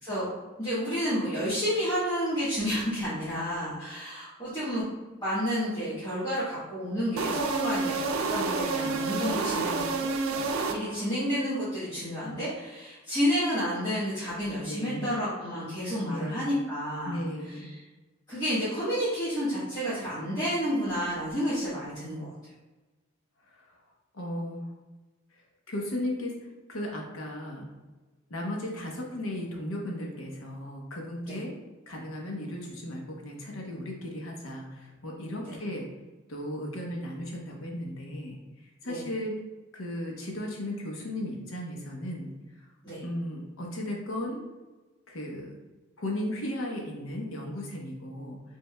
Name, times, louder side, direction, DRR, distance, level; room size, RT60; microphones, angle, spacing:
voice 1, 0.6-4.8 5.2-9.7 10.0-10.4 10.7-17.2 17.7-17.8 18.3-22.3 31.3-31.4 35.4-35.5 38.8-39.0 42.8-43.0, equal, 20° left, -14 dB, 1.4 m, -30 dB
sound 1, 7.2-11.2, right 3 dB, 90° right, 0.4 m, -29 dB
voice 2, 14.6-15.2 16.0-16.5 17.0-17.7 23.5-23.7 24.1-24.6 25.7-26.4 26.7-27.7 28.3-31.5 31.9-35.9 36.3-38.4 38.8-39.3 39.7-42.3 43.0-44.4 45.1-45.5 46.0-48.4, left 1 dB, 85° left, 0 dB, 0.9 m, -35 dB
5.4 x 3.4 x 2.2 m, 1.2 s
head